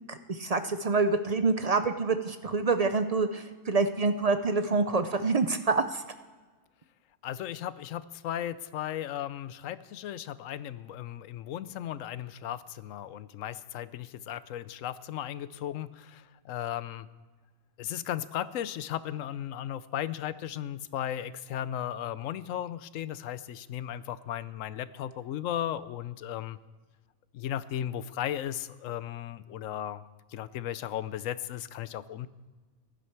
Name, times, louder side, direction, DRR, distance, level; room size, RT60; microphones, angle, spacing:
voice 1, 0.1-6.0, right 4 dB, 50° right, 9 dB, 0.4 m, -27 dB
voice 2, 7.2-17.1 17.8-26.6 27.3-30.0 30.3-32.3, left 11 dB, 75° left, 15 dB, 1.0 m, -36 dB
16.0 x 11.5 x 4.6 m, 1.3 s
omnidirectional pair, 1.4 m